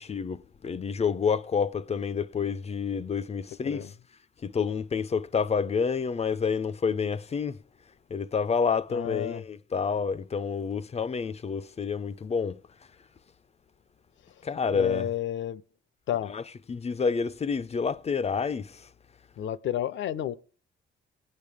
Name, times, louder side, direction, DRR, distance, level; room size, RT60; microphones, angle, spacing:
voice 1, 0.0-3.9 4.4-7.6 8.1-12.6 14.4-15.1 16.3-16.4 16.7-18.9, left 5 dB, 30° left, 0.6 m, -29 dB
voice 2, 8.9-9.4 14.7-15.6 16.1-16.3 19.4-20.4, left 11 dB, 70° left, 0.8 m, -31 dB
20.5 x 8.8 x 3.5 m
cardioid pair, 90°, 20 cm